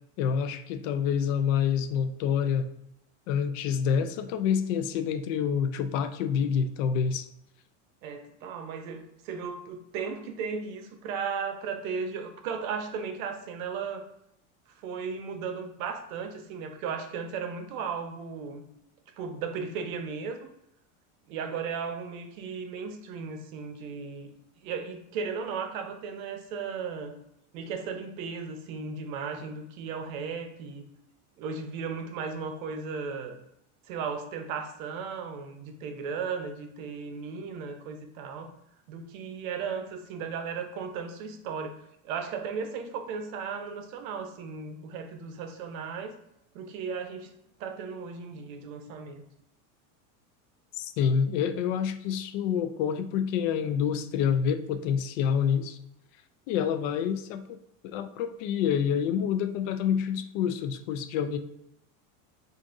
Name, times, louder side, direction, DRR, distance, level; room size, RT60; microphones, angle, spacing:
voice 1, 0.2-2.7 3.3-7.3 50.7-55.8 56.5-57.6 57.8-61.4, left 7 dB, 65° left, 10 dB, 0.5 m, -27 dB
voice 2, 8.0-14.0 14.7-18.6 19.2-20.5 21.3-24.3 24.6-27.1 27.5-30.8 31.4-33.4 33.9-38.5 38.9-41.8 42.0-46.2 46.5-47.3 47.6-49.2, right 5 dB, 75° right, 7 dB, 0.7 m, -36 dB
4.7 x 2.5 x 2.5 m, 0.81 s
supercardioid pair, 135°, 42 cm